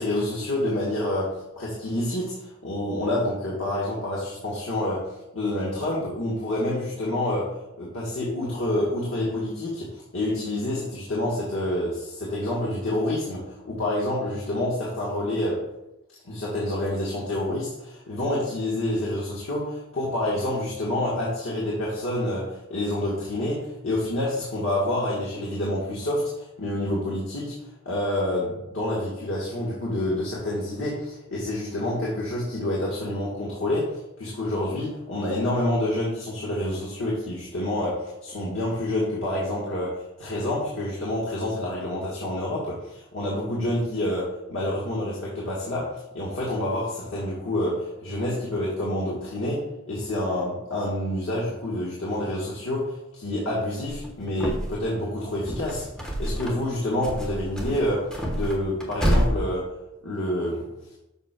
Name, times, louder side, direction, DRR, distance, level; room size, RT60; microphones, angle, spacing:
voice 1, 0.0-15.6 16.2-27.5 27.8-55.9 56.2-59.7 60.0-60.7, left 1 dB, 70° left, -6 dB, 1.4 m, -28 dB
sound 1, 53.9-54.9 55.3-56.7 57.0-59.3, equal, 5° left, 1.1 m, -28 dB
6.9 x 6.3 x 2.2 m, 0.92 s
head